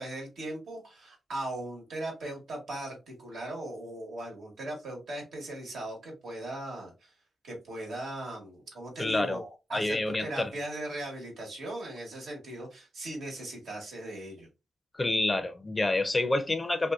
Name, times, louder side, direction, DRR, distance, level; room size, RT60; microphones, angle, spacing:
voice 1, 0.0-7.1 7.4-14.5, right 1 dB, 80° right, 1.2 m, -39 dB
voice 2, 9.0-9.4 9.7-10.5 14.9-16.9, left 2 dB, 25° left, 0.5 m, -28 dB
2.6 x 2.2 x 2.3 m
supercardioid pair, 50°, 0 cm